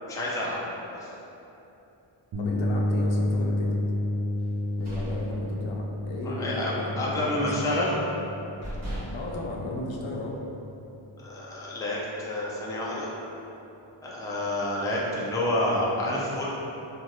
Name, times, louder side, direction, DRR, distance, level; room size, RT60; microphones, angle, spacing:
voice 1, 0.1-0.6 0.9-1.1 6.2-7.9 11.2-13.1 14.0-16.5, left 1 dB, 10° left, -6 dB, 0.4 m, -29 dB
sound 1, 2.3-10.1, left 1 dB, 55° right, 0.5 m, -30 dB
voice 2, 2.4-3.7 4.8-7.6 9.1-10.4, left 1 dB, 70° left, -1 dB, 0.6 m, -35 dB
sound 2, 4.5-6.1 6.4-6.7 7.0-7.8 8.2-8.3 8.6-10.4, equal, 35° right, 1.2 m, -39 dB
3.1 x 2.4 x 2.6 m, 2.9 s
cardioid pair, 85°, 48 cm